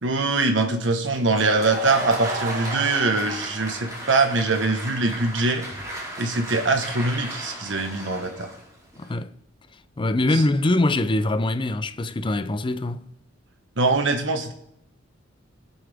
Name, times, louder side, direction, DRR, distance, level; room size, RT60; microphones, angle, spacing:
voice 1, 0.0-5.6 6.2-8.5 10.3-10.4 13.8-14.5, right 3 dB, 70° right, 1.3 m, -23 dB
Applause, 1.0-9.1, right 1 dB, 20° right, 4.4 m, -37 dB
Laughter / Crowd, 1.3-4.6 4.9-5.0 5.6-5.7 5.8-5.9, right 2 dB, 45° right, 1.7 m, -33 dB
voice 2, 9.0-9.3 10.0-13.1, left 2 dB, 25° left, 0.5 m, -23 dB
19.5 x 7.0 x 3.5 m
head